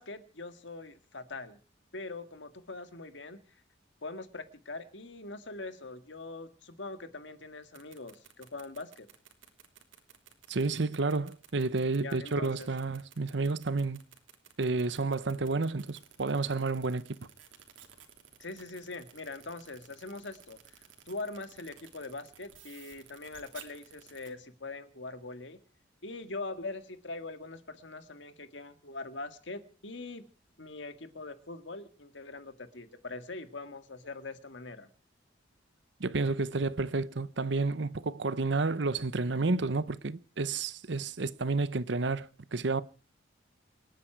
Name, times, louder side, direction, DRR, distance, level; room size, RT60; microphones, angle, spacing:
voice 1, 0.0-1.6 1.9-3.6 4.0-9.1 12.0-12.7 18.4-25.6 26.0-30.3 30.6-34.9, left 3 dB, 70° left, 1.9 m, -42 dB
sound 1, 7.6-24.3, right 9 dB, 85° right, 3.0 m, -54 dB
voice 2, 10.5-14.0 14.6-17.1 36.0-42.8, right 3 dB, 65° right, 0.8 m, -30 dB
28.0 x 10.0 x 4.6 m
head